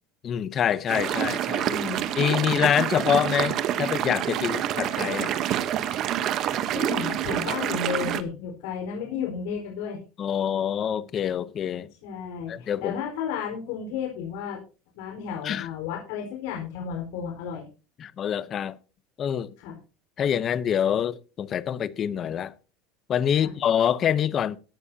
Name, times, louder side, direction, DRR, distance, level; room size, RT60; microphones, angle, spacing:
voice 1, 0.2-1.7 2.2-5.3 10.2-11.9 12.5-13.0 15.4-15.7 18.0-18.8 19.2-19.5 20.2-22.5 23.1-24.6, left 9 dB, 25° left, 0.7 m, -26 dB
sound 1, 0.9-8.2, right 11 dB, 35° right, 1.0 m, -27 dB
voice 2, 1.6-2.1 6.7-10.0 12.0-14.6 14.9-17.7 19.6-19.8 23.3-23.5, left 6 dB, 70° left, 4.6 m, -33 dB
17.0 x 12.5 x 2.8 m
cardioid pair, 170°, 0 cm